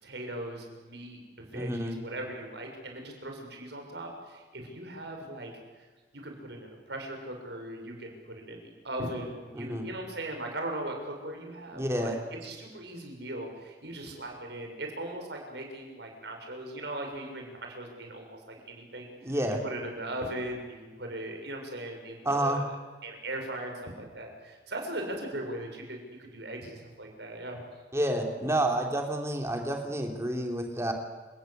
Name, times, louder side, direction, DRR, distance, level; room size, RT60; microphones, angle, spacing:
voice 1, 0.0-5.5 5.8-5.9 6.2-18.4 18.7-19.1 19.6-22.6 23.0-27.6, right 1 dB, 70° right, 3 dB, 6.6 m, -39 dB
voice 2, 1.5-2.0 9.5-9.9 11.7-12.2 19.2-19.6 22.2-22.6 27.9-30.9, right 1 dB, 15° right, 3 dB, 3.2 m, -29 dB
30.0 x 19.0 x 8.2 m, 1.3 s
head